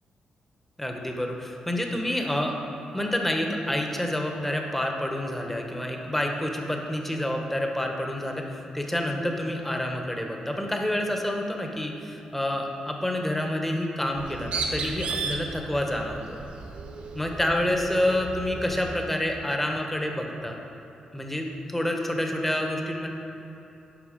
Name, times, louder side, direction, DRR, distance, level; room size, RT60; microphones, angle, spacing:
voice 1, 0.8-2.5 2.9-16.4 17.1-20.6 21.1-23.1, left 1 dB, 10° left, 2 dB, 0.9 m, -28 dB
Bird, 14.1-19.0, right 4 dB, 75° right, 0.9 m, -35 dB
11.0 x 4.0 x 5.1 m, 2.9 s
cardioid pair, 95°, 2 cm